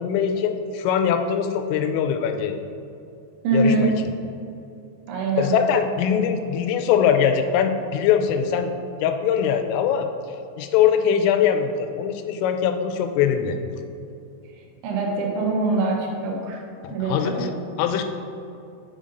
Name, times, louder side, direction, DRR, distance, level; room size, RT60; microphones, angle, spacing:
voice 1, 0.0-2.6 3.5-4.1 5.4-8.7 9.0-10.1 10.6-13.6 16.8-17.5 17.8-18.0, left 8 dB, 90° left, 6 dB, 3.1 m, -22 dB
voice 2, 3.4-3.9 5.1-5.6 14.8-16.6 16.9-17.5, right 3 dB, 75° right, 0 dB, 3.1 m, -23 dB
6.7 x 5.2 x 3.8 m, 2.6 s
omnidirectional pair, 5.7 m